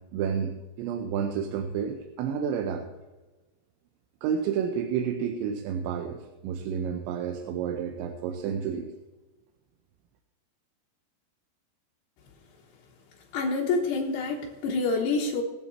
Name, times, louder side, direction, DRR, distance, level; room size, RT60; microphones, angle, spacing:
voice 1, 0.1-2.9 4.2-8.9, right 7 dB, 90° right, 4 dB, 3.2 m, -30 dB
voice 2, 13.3-15.4, left 3 dB, 70° left, -3 dB, 3.1 m, -27 dB
21.5 x 7.4 x 4.3 m, 1.2 s
omnidirectional pair, 5.2 m